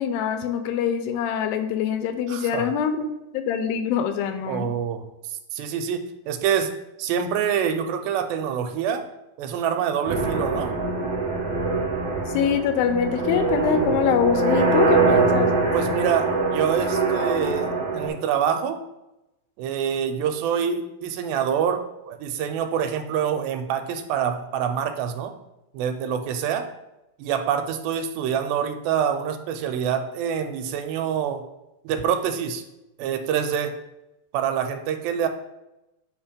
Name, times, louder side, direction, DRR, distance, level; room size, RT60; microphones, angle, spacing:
voice 1, 0.0-3.1 3.3-4.7 12.3-15.5, left 7 dB, 85° left, 8 dB, 2.3 m, -24 dB
voice 2, 2.3-2.7 4.5-5.0 5.5-6.7 7.0-9.0 9.4-10.7 15.7-18.8 19.6-25.3 25.7-26.7 27.2-31.4 31.8-32.6 33.0-33.7 34.3-35.3, right 8 dB, 85° right, 7 dB, 2.3 m, -26 dB
sound 1, 10.0-18.1, right 3 dB, 30° right, 1.5 m, -23 dB
8.2 x 2.9 x 5.0 m, 0.93 s
omnidirectional pair, 4.2 m